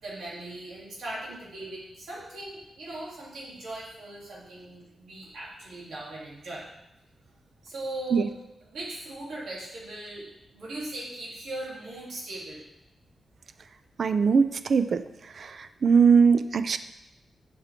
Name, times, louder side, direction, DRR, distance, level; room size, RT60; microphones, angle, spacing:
voice 1, 0.0-6.6 7.6-8.3 8.6-10.3 10.5-12.6, right 1 dB, 85° right, -6 dB, 3.4 m, -39 dB
voice 2, 14.0-15.0 15.4-16.8, right 5 dB, 50° right, 11 dB, 0.4 m, -21 dB
8.0 x 7.8 x 3.7 m, 0.88 s
wide cardioid pair, 140°, 0 cm